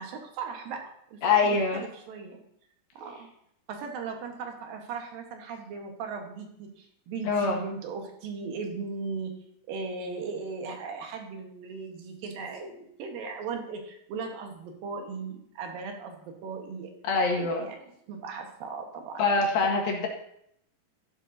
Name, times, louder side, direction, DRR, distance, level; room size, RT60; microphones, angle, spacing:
voice 1, 0.0-2.4 2.9-3.3 3.7-9.3 9.7-19.2 19.6-19.7, right 4 dB, 75° right, 3 dB, 3.0 m, -38 dB
voice 2, 1.2-1.8 7.3-7.6 17.1-17.7 19.2-20.1, left 4 dB, 80° left, 0 dB, 3.4 m, -24 dB
13.5 x 12.0 x 2.7 m, 0.73 s
omnidirectional pair, 4.2 m